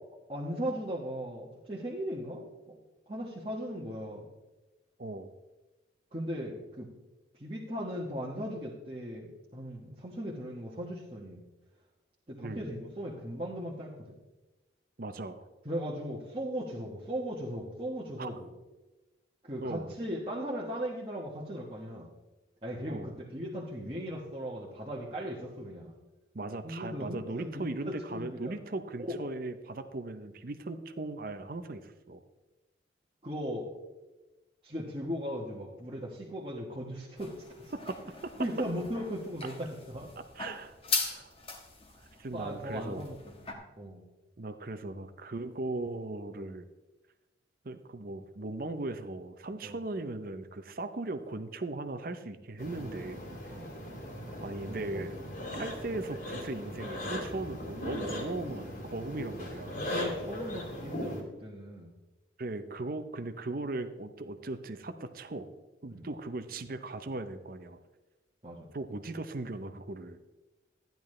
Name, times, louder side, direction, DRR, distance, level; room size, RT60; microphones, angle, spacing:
voice 1, 0.3-2.5 3.1-4.3 6.1-6.9 7.3-9.3 9.5-11.4 12.3-14.2 15.6-18.5 19.4-22.1 22.6-25.9 26.6-28.5 29.0-29.3 33.2-33.7 34.6-37.7 38.4-40.1 42.3-44.0 49.6-49.8 53.5-53.7 54.7-55.1 55.4-55.5 59.7-61.9 65.9-66.1 68.4-68.7, equal, 30° right, -6 dB, 1.2 m, -38 dB
voice 2, 15.0-15.4 18.2-18.3 19.6-19.9 22.9-23.1 26.3-32.2 37.7-38.3 40.3-40.7 41.0-41.3 42.2-43.0 44.4-46.7 47.6-53.2 54.4-55.2 55.6-59.7 62.4-65.5 65.8-67.8 68.7-70.2, right 2 dB, 50° right, 10 dB, 0.6 m, -38 dB
sound 1, 37.2-43.5, left 4 dB, 30° left, 1.3 m, -40 dB
sound 2, 52.6-61.2, equal, 45° left, 2.2 m, -38 dB
12.5 x 10.5 x 3.2 m, 1.1 s
head